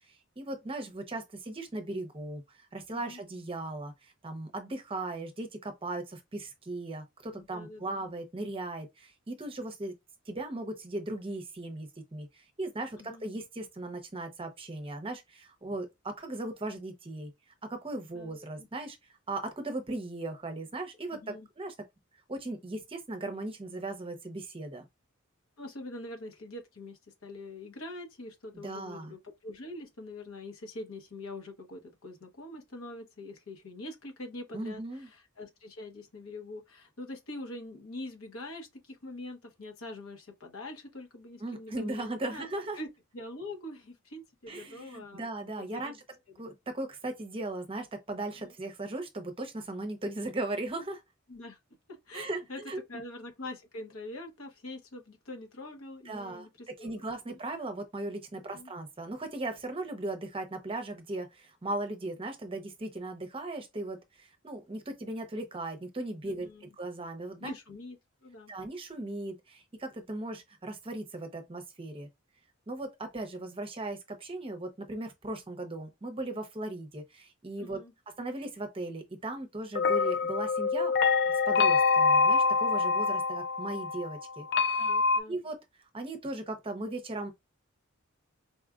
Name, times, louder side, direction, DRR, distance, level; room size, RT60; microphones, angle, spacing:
voice 1, 0.4-2.4 2.7-9.9 10.3-17.3 17.7-19.0 19.3-21.7 22.3-24.8 28.5-29.1 34.5-35.1 41.4-42.8 44.5-45.9 46.4-51.0 52.1-52.8 56.1-56.5 56.8-67.5 68.5-72.1 72.7-77.8 78.2-80.9 81.5-84.8 85.3-85.6 85.9-87.3, right 2 dB, 25° right, 0.7 m, -38 dB
voice 2, 7.3-8.1 13.0-13.3 18.1-18.7 21.1-21.5 25.6-42.5 42.8-42.9 43.1-46.0 48.4-48.5 51.3-51.6 51.9-52.6 52.9-57.1 58.5-58.7 66.2-66.7 67.4-68.5 77.6-77.9 84.8-85.4, left 2 dB, 75° left, 1.1 m, -44 dB
sound 1, 79.8-85.2, left 4 dB, 55° left, 0.3 m, -25 dB
4.2 x 2.3 x 2.4 m
head